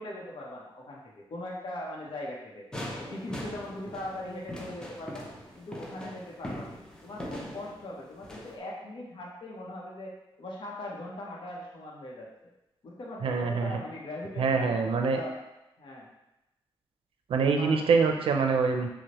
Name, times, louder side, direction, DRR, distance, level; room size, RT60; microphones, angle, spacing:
voice 1, 0.0-2.7 3.0-5.3 5.5-6.7 7.0-10.1 10.4-12.3 12.8-15.4 15.8-16.1 17.3-17.9, left 1 dB, 60° left, -4 dB, 0.8 m, -40 dB
sound 1, 2.7-8.6, left 1 dB, 10° left, 0.5 m, -41 dB
voice 2, 13.2-13.8 14.4-15.2 17.3-18.9, right 5 dB, 75° right, 4 dB, 0.5 m, -25 dB
6.0 x 2.1 x 2.9 m, 0.94 s
wide cardioid pair, 120°, 9 cm